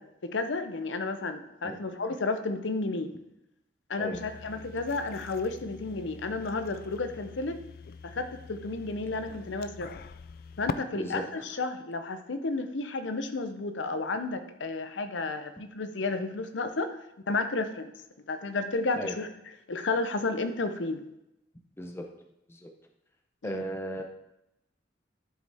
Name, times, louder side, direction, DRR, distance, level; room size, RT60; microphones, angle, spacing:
voice 1, 0.0-3.1 3.9-7.6 8.0-9.9 10.6-17.0 17.3-17.9 18.3-19.3 19.7-21.1 23.4-23.6, left 3 dB, 85° left, 9 dB, 0.7 m, -32 dB
sound 1, 4.1-10.7, left 5 dB, 55° left, 0.4 m, -43 dB
voice 2, 10.9-11.3 18.9-19.2 21.8-22.1 22.5-22.7 23.4-24.0, equal, 15° left, 3 dB, 0.7 m, -36 dB
11.0 x 5.3 x 3.4 m, 0.87 s
head